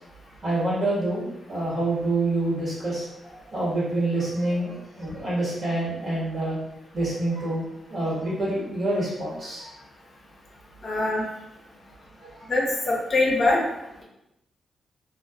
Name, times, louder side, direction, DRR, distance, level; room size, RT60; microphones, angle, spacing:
voice 1, 0.4-3.1 3.5-6.6 6.9-7.6 7.9-9.7 12.2-12.5, right 2 dB, 45° right, -8 dB, 1.4 m, -27 dB
voice 2, 10.8-11.2 12.5-13.6, left 2 dB, 50° left, -2 dB, 0.6 m, -23 dB
2.4 x 2.4 x 2.3 m, 0.89 s
cardioid pair, 75°, 0 cm